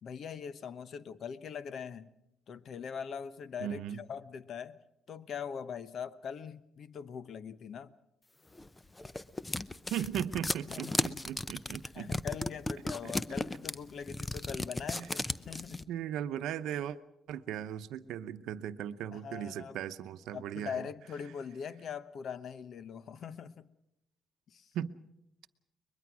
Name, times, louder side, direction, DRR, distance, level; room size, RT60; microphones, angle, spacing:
voice 1, 0.0-2.1 2.5-4.8 5.1-7.9 10.6-11.2 11.9-15.9 19.1-19.8 20.3-23.7 24.5-24.7, left 7 dB, 60° left, 15 dB, 0.9 m, -42 dB
voice 2, 3.6-4.0 9.9-12.1 13.0-13.1 14.9-15.1 15.9-17.0 17.3-20.8 24.7-24.9, right 10 dB, 85° right, 11 dB, 0.8 m, -37 dB
sound 1, 8.6-15.8, left 2 dB, 20° left, 0.7 m, -35 dB
22.5 x 21.5 x 6.1 m, 0.85 s
cardioid pair, 90°, 0 cm